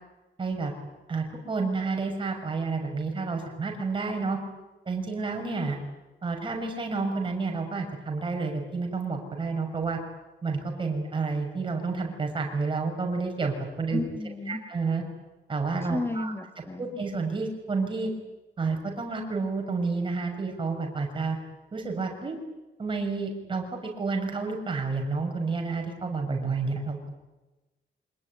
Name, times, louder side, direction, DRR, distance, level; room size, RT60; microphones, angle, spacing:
voice 1, 0.4-0.7 1.1-4.4 4.9-5.8 6.2-10.0 10.4-14.0 14.5-15.0 15.5-16.3 16.8-18.1 18.6-21.4 21.7-22.4 22.8-27.1, right 4 dB, 25° right, 3 dB, 6.3 m, -30 dB
voice 2, 13.9-14.6 15.9-17.0, left 2 dB, 10° left, 7 dB, 2.2 m, -32 dB
26.0 x 20.5 x 9.9 m, 1.1 s
wide cardioid pair, 165°, 20 cm